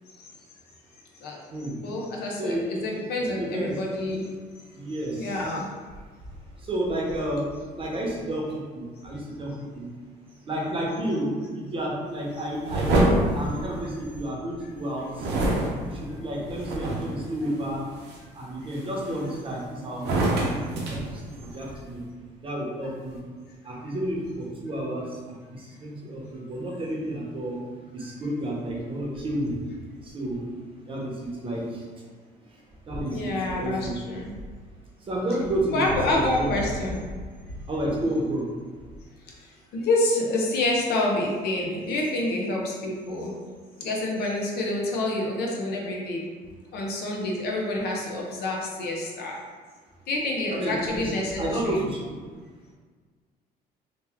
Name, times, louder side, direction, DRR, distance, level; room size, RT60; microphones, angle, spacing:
voice 1, 1.8-4.3 5.1-5.7 33.1-34.3 35.7-37.0 39.7-43.3 43.8-46.2 46.7-49.4 50.1-51.8, left 2 dB, 70° left, -2 dB, 0.7 m, -27 dB
voice 2, 2.4-2.8 3.4-3.7 4.7-5.4 6.6-7.5 7.8-8.5 8.7-9.9 10.5-15.1 15.9-17.8 18.4-21.0 21.4-22.0 22.4-23.2 23.6-27.6 27.9-29.5 30.0-30.5 30.9-31.8 32.9-34.0 35.1-36.6 37.7-38.5 50.5-51.1 51.4-52.2, right 1 dB, 30° right, -3 dB, 0.8 m, -30 dB
sound 1, 12.6-14.3 15.2-17.2 17.8-18.2 18.7-19.5 19.9-21.8, right 1 dB, 80° right, 0.7 m, -26 dB
2.9 x 2.2 x 3.4 m, 1.5 s
cardioid pair, 110°, 17 cm